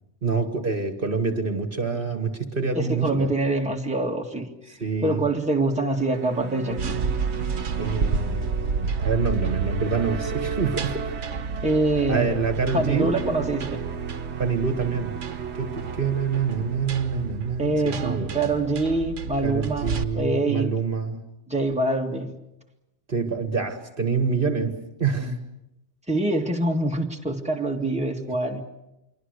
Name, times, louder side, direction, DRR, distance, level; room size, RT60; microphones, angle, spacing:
voice 1, 0.2-3.3 4.7-5.3 7.8-11.1 12.1-13.1 13.4-13.5 14.4-15.2 15.6-18.5 19.4-21.2 23.1-25.4, right 5 dB, 50° right, 7 dB, 1.7 m, -26 dB
voice 2, 2.7-4.5 5.0-7.0 11.6-12.4 12.7-13.8 17.6-20.7 21.5-22.3 25.2-25.4 26.1-28.6, right 2 dB, 5° right, 1 dB, 2.2 m, -25 dB
sound 1, 5.7-18.2, right 6 dB, 65° right, 1.4 m, -36 dB
sound 2, 6.7-20.0, right 5 dB, 85° right, 1.4 m, -31 dB
27.0 x 23.5 x 6.7 m, 0.91 s
omnidirectional pair, 1.2 m